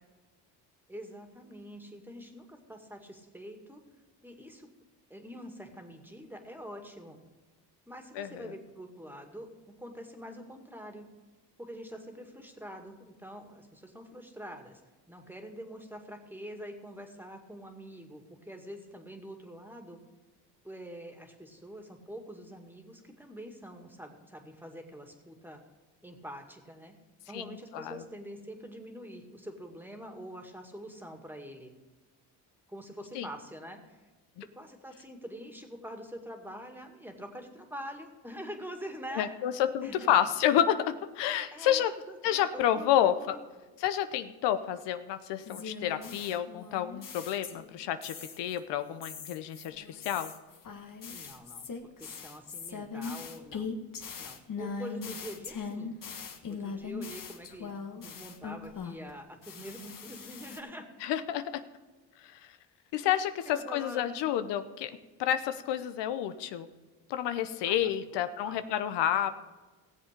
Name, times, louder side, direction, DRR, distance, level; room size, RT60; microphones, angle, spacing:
voice 1, 0.9-3.8 4.2-4.7 5.1-7.2 7.9-9.5 9.8-11.1 11.6-14.8 15.1-20.0 20.6-25.6 26.0-26.9 27.3-31.7 32.7-34.1 34.5-39.3 39.8-40.1 41.5-42.9 43.1-43.4 51.1-53.7 54.2-55.9 56.5-60.9 63.5-64.2 67.6-68.7, equal, 5° right, 4 dB, 2.1 m, -45 dB
voice 2, 8.2-8.5 27.3-27.4 27.7-28.0 33.1-33.3 39.2-41.9 42.2-43.3 43.8-50.3 61.0-61.6 62.9-64.9 65.2-66.7 67.1-69.3, left 10 dB, 85° left, 10 dB, 0.8 m, -29 dB
sound 1, 45.5-47.8 48.0-48.6 49.0-59.1 59.4-60.6, left 5 dB, 50° left, 1.5 m, -41 dB
16.5 x 7.5 x 5.2 m, 1.3 s
cardioid pair, 75°, 41 cm